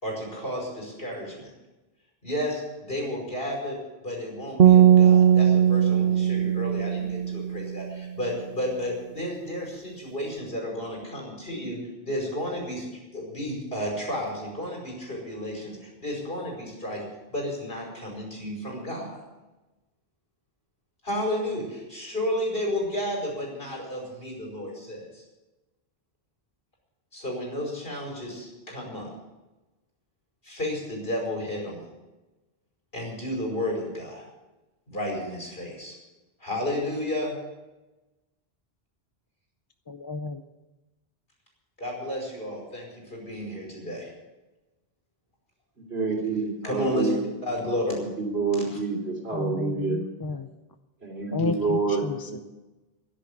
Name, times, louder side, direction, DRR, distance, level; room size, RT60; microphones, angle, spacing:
voice 1, 0.0-1.5 2.2-3.8 4.0-17.0 17.3-19.2 21.0-25.2 27.1-29.1 30.4-31.8 32.9-34.2 34.9-36.0 36.4-37.3 41.8-44.1 46.6-47.1 47.4-48.0 48.7-48.8, left 1 dB, 65° left, -1 dB, 5.4 m, -32 dB
sound 1, 4.6-7.8, right 9 dB, 65° right, 0.9 m, -18 dB
voice 2, 39.9-40.4 49.3-50.5 51.3-52.4, left 3 dB, 30° left, 8 dB, 0.5 m, -32 dB
voice 3, 45.9-47.2 47.9-50.0 51.0-52.4, right 4 dB, 85° right, 0 dB, 3.5 m, -28 dB
12.0 x 11.0 x 8.7 m, 1.1 s
omnidirectional pair, 1.0 m